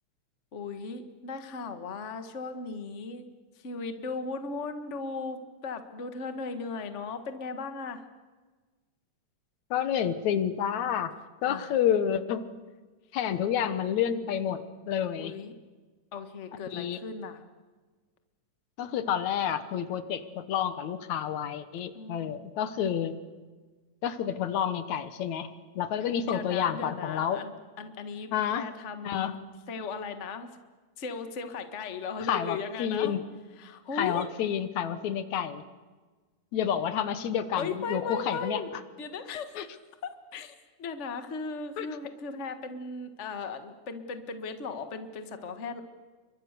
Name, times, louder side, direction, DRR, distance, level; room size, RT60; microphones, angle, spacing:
voice 1, 0.5-3.2 3.5-8.0 11.4-11.7 15.2-15.5 16.1-17.4 21.9-22.5 26.0-27.5 27.8-29.3 29.7-30.5 31.0-33.1 33.6-34.3 37.6-39.6 40.0-45.8, left 4 dB, 30° left, 8 dB, 1.6 m, -37 dB
voice 2, 9.7-11.1 11.4-12.5 13.1-14.6 14.9-15.4 16.7-17.0 18.8-23.1 24.0-25.5 25.8-27.4 28.3-28.7 29.0-29.3 32.3-33.2 33.9-35.6 36.5-38.6 39.6-39.7 41.8-41.9, left 9 dB, 75° left, 12 dB, 2.4 m, -29 dB
29.5 x 24.5 x 6.8 m, 1.4 s
omnidirectional pair, 3.4 m